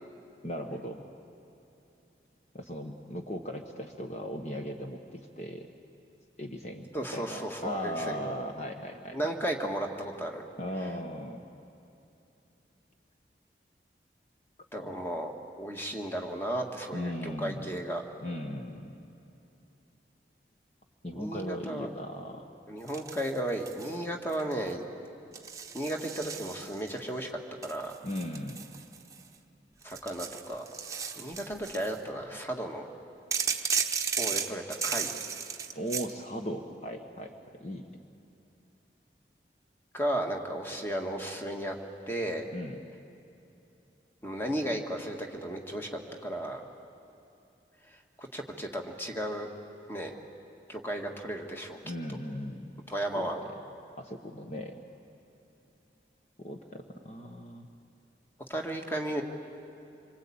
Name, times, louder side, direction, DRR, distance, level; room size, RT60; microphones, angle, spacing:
voice 1, 0.4-1.0 2.5-5.7 6.4-9.2 10.6-11.4 14.8-14.9 16.9-17.8 18.2-19.0 21.0-22.5 28.0-28.7 35.7-37.3 37.6-37.9 42.5-42.8 51.8-52.8 53.1-53.3 54.0-54.8 56.4-57.7, equal, 40° left, 3 dB, 1.3 m, -38 dB
voice 2, 6.9-8.3 9.1-10.4 14.7-15.3 15.6-18.0 21.1-21.9 22.7-24.8 25.7-27.9 29.8-30.7 31.2-32.9 34.2-35.1 39.9-41.8 42.1-42.5 44.2-46.6 48.2-49.5 49.9-50.2 50.7-51.8 52.9-53.4 58.5-59.2, right 1 dB, 15° left, 2 dB, 1.8 m, -34 dB
sound 1, 22.9-24.0 24.3-24.7 25.3-27.0 27.6-29.3 29.8-32.0 33.3-36.1, right 6 dB, 20° right, 1.0 m, -35 dB
26.5 x 24.0 x 8.7 m, 2.8 s
head